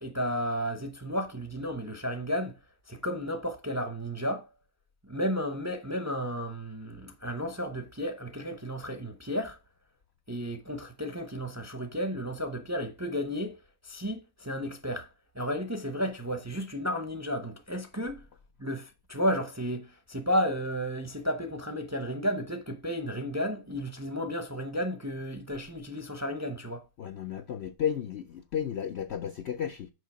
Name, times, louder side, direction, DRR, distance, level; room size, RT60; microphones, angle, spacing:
voice 1, 0.0-2.5 2.9-4.5 5.0-9.6 10.3-13.6 13.8-15.1 15.3-18.2 18.6-26.8, equal, 15° right, 0.6 m, -33 dB
voice 2, 27.0-29.9, left 9 dB, 65° left, 0.7 m, -33 dB
6.5 x 5.0 x 4.9 m
omnidirectional pair, 1.6 m